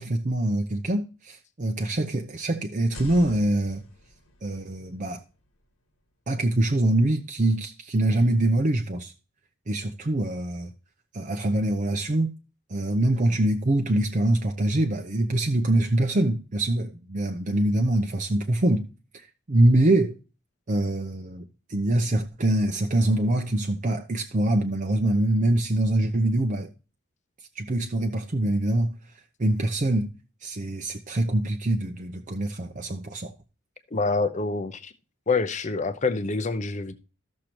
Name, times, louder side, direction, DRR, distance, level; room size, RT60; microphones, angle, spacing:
voice 1, 0.0-3.8 4.4-5.2 6.3-9.1 9.7-10.7 11.1-12.3 12.7-18.9 19.1-20.2 20.7-26.7 27.6-29.0 29.4-30.1 30.4-33.3, right 1 dB, 40° right, 0.7 m, -24 dB
sound 1, 2.8-6.6, left 1 dB, 75° left, 1.7 m, -46 dB
voice 2, 33.9-34.9 35.3-36.9, left 4 dB, 35° left, 0.7 m, -26 dB
13.5 x 6.5 x 2.9 m
head